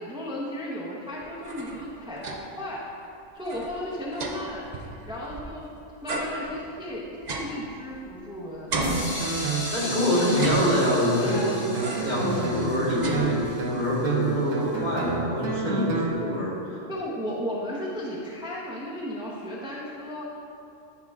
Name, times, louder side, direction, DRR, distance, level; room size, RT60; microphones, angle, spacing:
voice 1, 0.0-2.8 3.3-4.7 5.1-5.7 6.0-7.0 7.3-8.7 11.2-11.5 16.9-20.3, equal, 5° right, -6 dB, 0.6 m, -34 dB
sound 1, 1.2-2.7 3.0-3.1 3.4-5.6 6.1-8.3 8.7-9.8 10.3-11.2 11.7-12.3 12.6-13.8, right 2 dB, 45° right, 0.6 m, -34 dB
Guitar, 8.7-16.1, right 5 dB, 70° right, 1.2 m, -30 dB
sound 2, 8.8-14.6, left 1 dB, 55° left, 1.9 m, -37 dB
voice 2, 9.7-11.7 12.0-16.6, left 1 dB, 35° left, -5 dB, 1.2 m, -25 dB
11.0 x 3.7 x 3.5 m, 2.7 s
omnidirectional pair, 1.4 m